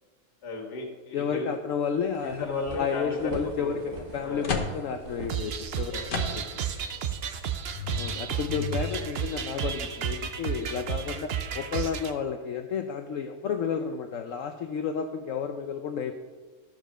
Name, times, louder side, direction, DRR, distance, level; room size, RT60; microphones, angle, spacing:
voice 1, 0.4-1.5 2.2-4.5 5.9-6.1, left 3 dB, 90° left, 0 dB, 2.2 m, -35 dB
voice 2, 1.1-2.5 2.8-6.6 7.9-16.2, left 6 dB, 65° left, 6 dB, 0.9 m, -31 dB
sound 1, 1.5-1.6 1.9-6.1, right 3 dB, 35° right, 1.2 m, -43 dB
sound 2, 3.5-3.6 4.0-6.8 7.2-7.3 7.7-9.0, left 4 dB, 40° left, 1.0 m, -35 dB
sound 3, 5.3-12.1, right 8 dB, 60° right, 0.7 m, -32 dB
12.0 x 5.1 x 6.3 m, 1.4 s
omnidirectional pair, 1.7 m